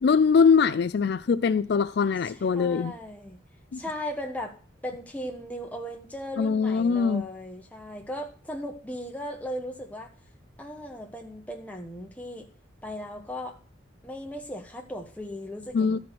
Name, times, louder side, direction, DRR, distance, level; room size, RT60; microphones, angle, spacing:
voice 1, 0.0-2.9 3.7-3.8 6.4-7.2 15.7-16.0, left 5 dB, 60° left, 0.4 m, -22 dB
voice 2, 2.2-3.4 3.7-4.6 4.8-10.1 10.6-12.5 12.8-13.6 14.0-16.0, equal, 10° left, 1.4 m, -37 dB
12.5 x 4.8 x 5.9 m
head